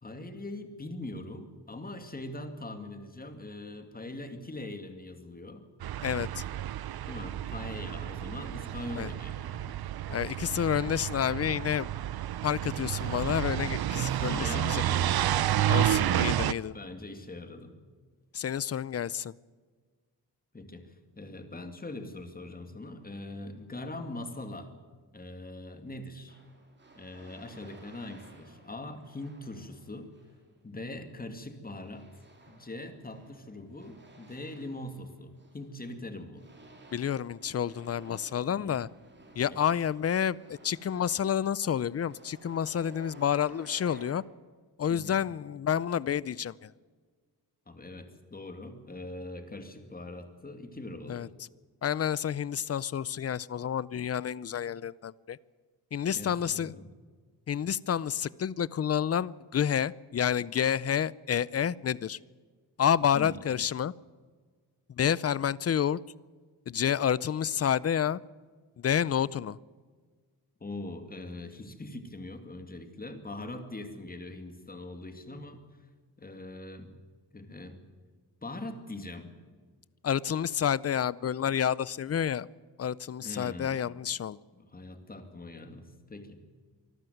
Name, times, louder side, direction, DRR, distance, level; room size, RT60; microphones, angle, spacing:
voice 1, 0.0-5.6 7.1-9.8 13.9-15.3 15.7-17.7 20.5-24.7 25.1-26.4 26.9-30.1 30.6-32.1 32.5-36.5 38.5-39.0 39.5-39.6 44.9-45.2 47.7-51.3 56.1-56.9 63.1-63.4 70.6-75.6 76.2-76.9 77.3-77.8 78.4-79.3 83.2-83.8 84.5-86.4, left 2 dB, 20° left, 7 dB, 2.4 m, -42 dB
sound 1, 5.8-16.5, right 12 dB, 65° right, 0.7 m, -30 dB
voice 2, 6.0-6.4 9.0-9.1 10.1-11.9 12.4-14.8 15.7-16.7 18.3-19.3 36.9-38.9 39.4-44.2 44.8-46.7 51.1-51.3 51.8-55.4 55.9-56.7 57.5-62.2 62.8-63.9 65.0-66.0 66.7-68.2 68.8-69.6 80.0-82.5 82.8-84.4, left 9 dB, 40° left, 22 dB, 0.5 m, -29 dB
sound 2, 26.3-30.5 31.8-35.9 36.3-44.1, right 2 dB, 25° right, 3.6 m, -55 dB
24.5 x 13.5 x 9.3 m, 1.5 s
wide cardioid pair, 130°, 40 cm